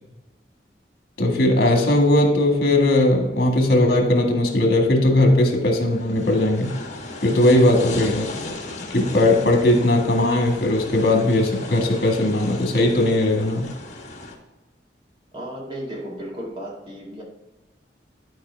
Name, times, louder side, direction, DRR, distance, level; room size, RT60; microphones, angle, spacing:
voice 1, 1.2-6.8 7.2-8.3 8.9-13.7, left 1 dB, 60° left, 2 dB, 1.8 m, -18 dB
sound 1, 5.9-14.3, left 2 dB, 40° left, 1.5 m, -35 dB
voice 2, 15.3-17.2, equal, 30° right, -3 dB, 2.0 m, -34 dB
12.0 x 5.0 x 3.4 m, 1.1 s
head